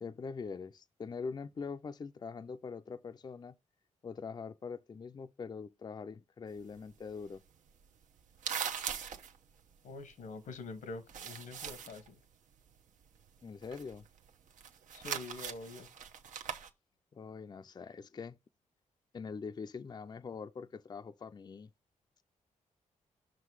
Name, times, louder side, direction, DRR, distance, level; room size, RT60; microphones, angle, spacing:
voice 1, 0.0-3.6 4.0-7.4 13.4-14.1 17.1-18.4 19.1-21.7, left 5 dB, 35° left, 0.4 m, -43 dB
sound 1, 6.5-10.7 11.0-12.1 12.3-16.7, right 7 dB, 80° right, 0.8 m, -41 dB
voice 2, 9.8-12.2 14.9-15.9, left 3 dB, 85° left, 1.1 m, -45 dB
6.3 x 3.8 x 4.7 m
cardioid pair, 85°, 13 cm